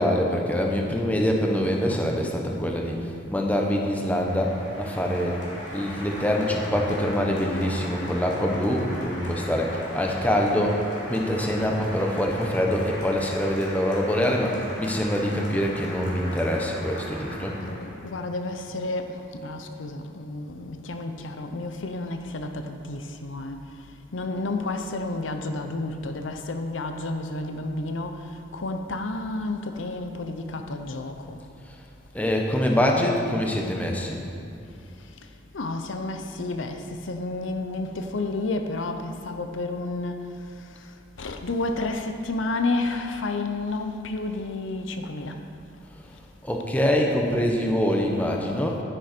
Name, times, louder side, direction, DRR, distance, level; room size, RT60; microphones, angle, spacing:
voice 1, 0.0-5.4 5.7-17.6 32.1-34.2 46.4-48.8, equal, 10° left, 0 dB, 1.0 m, -25 dB
Applause, 3.6-18.1, left 1 dB, 70° left, 3.0 m, -38 dB
voice 2, 17.6-23.6 24.1-31.4 35.5-40.2 40.6-40.9 41.2-45.4, left 2 dB, 85° left, 6 dB, 0.7 m, -31 dB
11.0 x 10.0 x 4.5 m, 2.6 s
head